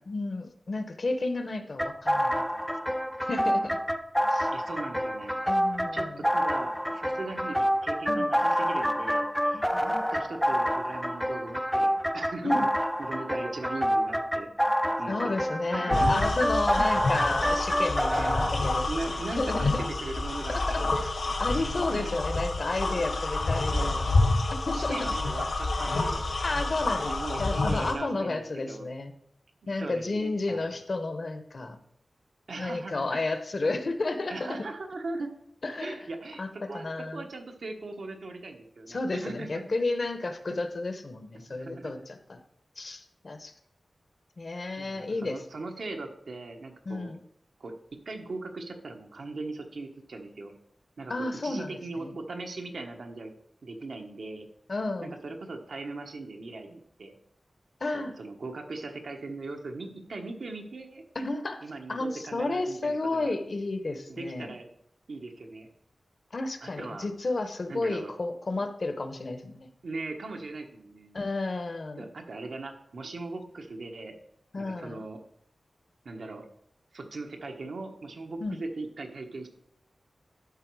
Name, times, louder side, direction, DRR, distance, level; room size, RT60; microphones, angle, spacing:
voice 1, 0.1-2.4 3.2-3.8 4.3-4.5 5.4-6.2 8.1-8.2 9.5-9.8 12.4-12.7 15.1-19.8 20.5-21.1 21.4-24.2 24.5-25.1 26.4-27.1 27.4-29.1 29.7-31.8 32.6-34.7 35.6-36.0 36.4-36.5 36.7-37.3 38.9-42.4 42.8-43.5 44.4-45.4 46.9-47.2 51.1-52.1 54.7-55.1 57.8-58.2 61.1-61.6 61.9-64.6 66.3-69.7 71.1-72.1 74.5-75.0 78.4-78.6, left 2 dB, 50° left, 8 dB, 0.8 m, -32 dB
sound 1, 1.8-18.5, equal, ahead, 0.3 m, -27 dB
voice 2, 4.5-5.3 5.9-12.7 13.0-14.5 15.0-15.4 15.7-16.2 16.7-17.3 17.8-17.9 18.2-18.6 18.9-19.5 20.0-21.0 21.9-22.2 23.0-23.4 23.7-24.0 24.7-26.3 27.0-28.9 29.6-30.7 32.5-33.2 34.3-35.3 35.8-39.5 41.5-42.1 44.8-47.1 47.6-47.7 48.0-50.5 51.0-51.1 51.4-53.3 53.6-54.5 55.0-57.1 57.9-61.0 61.6-63.3 64.1-64.7 65.1-65.7 66.6-67.1 67.7-68.1 69.8-71.2 72.0-74.2 74.6-75.2 76.0-76.4 76.9-79.5, right 3 dB, 75° right, 3 dB, 1.2 m, -39 dB
sound 2, 15.9-27.9, left 2 dB, 85° left, 1.8 m, -28 dB
12.0 x 4.2 x 4.7 m, 0.71 s
wide cardioid pair, 110°, 0 cm